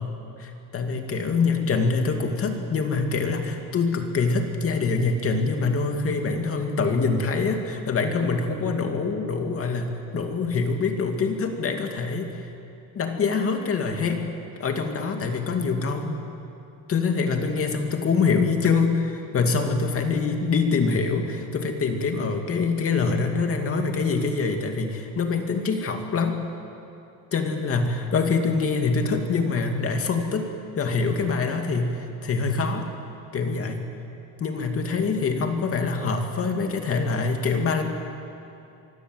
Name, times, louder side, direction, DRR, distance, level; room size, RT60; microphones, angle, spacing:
voice 1, 0.0-12.3 12.9-14.2 14.6-16.2 16.9-26.4 27.3-32.9 33.3-33.8 34.4-37.8, left 4 dB, 40° left, 4 dB, 2.4 m, -25 dB
24.5 x 24.5 x 8.0 m, 2.7 s
cardioid pair, 155°, 34 cm